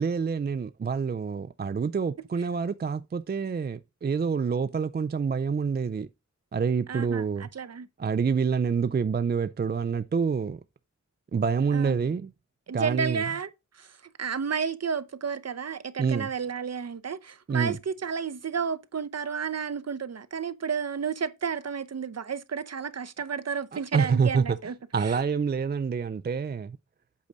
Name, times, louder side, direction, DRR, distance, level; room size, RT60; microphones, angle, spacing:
voice 1, 0.0-6.1 6.5-7.5 8.0-10.6 11.3-12.3 12.7-13.2 16.0-16.3 17.5-17.8 23.7-24.6 24.9-26.8, right 6 dB, 35° right, 0.4 m, -27 dB
voice 2, 6.9-7.9 11.7-12.1 12.7-13.5 13.8-25.2, right 6 dB, 55° right, 0.7 m, -32 dB
8.2 x 4.9 x 3.9 m
wide cardioid pair, 75°, 30 cm